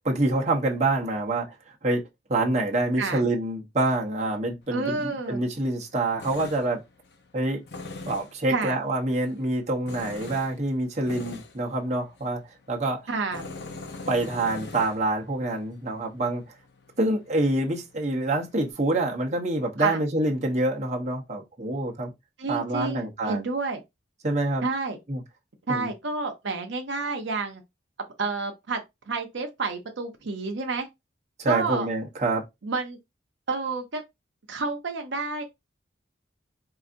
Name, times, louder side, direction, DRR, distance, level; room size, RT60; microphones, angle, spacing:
voice 1, 0.0-1.5 1.8-2.0 2.3-6.8 7.3-7.6 8.1-12.4 12.7-13.0 14.1-16.4 17.0-22.1 22.5-23.4 24.2-24.7 25.1-25.2 25.7-25.9 31.4-32.4, right 2 dB, 35° right, 0.8 m, -26 dB
Tools, 4.6-18.7, left 3 dB, 60° left, 0.7 m, -44 dB
voice 2, 4.7-5.4 8.5-8.8 13.1-13.5 19.8-20.0 22.4-23.8 24.6-25.0 25.7-27.6 28.2-28.8 29.1-30.9 31.5-31.9 32.6-33.0 33.5-34.0 34.5-35.4, right 4 dB, 75° right, 0.7 m, -29 dB
4.8 x 2.5 x 2.5 m
head